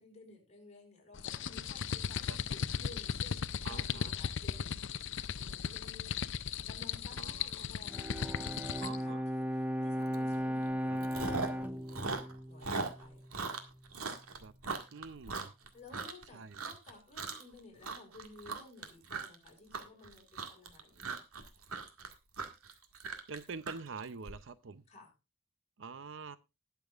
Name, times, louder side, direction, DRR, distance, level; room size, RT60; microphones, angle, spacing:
voice 1, 0.0-4.7 5.4-6.1 6.6-12.1 12.5-13.3 15.7-21.2 24.9-25.1, left 3 dB, 30° left, 1 dB, 4.8 m, -55 dB
sound 1, 1.1-9.0, left 7 dB, 60° left, 0.6 m, -37 dB
voice 2, 3.6-4.1 7.2-7.7 8.8-9.2 10.8-11.0 14.4-14.5 14.9-15.5 16.3-16.6 23.3-24.8 25.8-26.4, right 4 dB, 60° right, 14 dB, 0.6 m, -45 dB
Bowed string instrument, 7.9-13.4, equal, 5° right, 0.5 m, -36 dB
Chewing mastication, 10.1-10.4 10.7-11.6 11.9-16.2 16.5-16.9 17.2-17.5 17.8-24.3, right 4 dB, 85° right, 1.9 m, -39 dB
20.0 x 6.9 x 2.4 m, 0.26 s
head